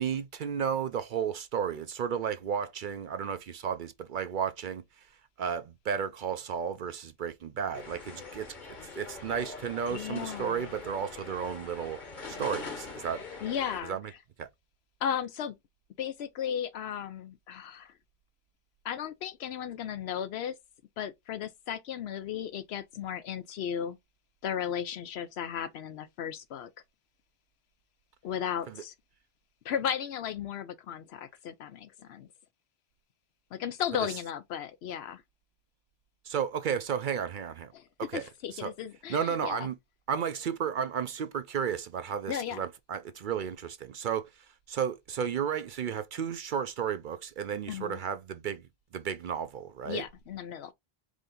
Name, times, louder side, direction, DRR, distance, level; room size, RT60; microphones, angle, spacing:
voice 1, 0.0-4.8 5.4-8.6 8.9-12.0 12.3-13.2 13.8-14.1 14.4-14.5 28.6-28.8 33.9-34.2 36.2-37.7 38.0-38.7 39.1-39.8 40.1-44.3 44.7-50.1, right 7 dB, 60° right, 0.6 m, -33 dB
sound 1, 7.7-13.8, left 4 dB, 50° left, 1.3 m, -43 dB
voice 2, 9.9-10.7 13.4-14.0 15.0-15.5 16.0-17.9 18.8-20.6 21.0-24.0 24.4-26.7 28.2-28.9 29.6-32.3 33.5-35.2 37.7-39.7 42.3-42.6 47.7-48.0 49.9-50.7, left 9 dB, 80° left, 0.8 m, -35 dB
4.8 x 2.6 x 3.8 m
omnidirectional pair, 1.1 m